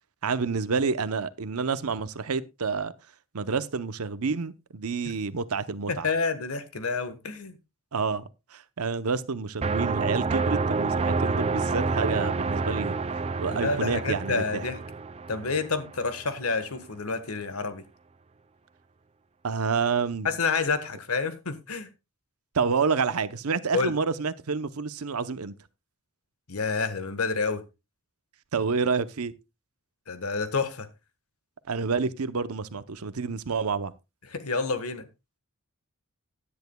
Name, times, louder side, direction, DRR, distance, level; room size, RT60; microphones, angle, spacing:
voice 1, 0.2-2.9 3.3-6.1 7.9-12.9 13.4-14.6 19.4-20.3 22.5-25.5 28.5-29.3 31.7-33.9, right 5 dB, 90° right, 0.8 m, -28 dB
voice 2, 5.9-7.6 13.5-14.8 15.3-17.8 20.2-21.9 23.7-23.9 26.5-27.6 30.1-30.9 34.3-35.1, left 4 dB, 90° left, 1.4 m, -29 dB
sound 1, 9.6-16.3, right 4 dB, 30° right, 0.5 m, -28 dB
16.0 x 10.5 x 2.3 m
head